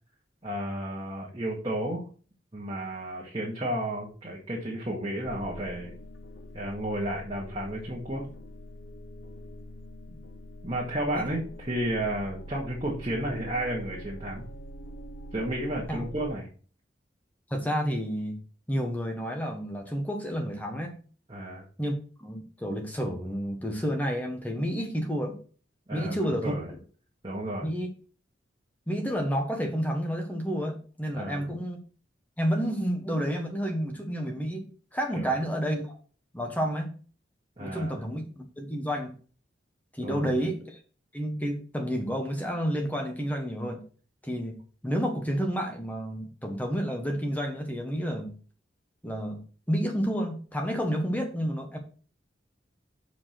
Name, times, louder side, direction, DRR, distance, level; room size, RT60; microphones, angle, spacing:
voice 1, 0.4-2.0 2.5-5.9 6.5-8.2 10.6-14.4 15.3-16.5 21.3-21.6 25.9-26.7 27.2-27.7 31.1-31.4 35.2-35.3 37.6-38.0 40.0-40.3, right 1 dB, 30° right, -4 dB, 2.0 m, -32 dB
sound 1, 5.3-16.3, equal, 80° left, 0.7 m, -44 dB
voice 2, 17.5-18.4 18.7-21.0 21.8-21.9 22.2-25.3 25.9-26.8 27.6-27.9 28.9-31.8 32.4-36.0 36.3-36.9 37.6-39.1 39.9-40.8 41.1-43.8 44.2-44.6 44.8-48.4 49.0-51.8, equal, 10° left, 3 dB, 1.3 m, -30 dB
7.3 x 5.1 x 5.8 m, 0.39 s
head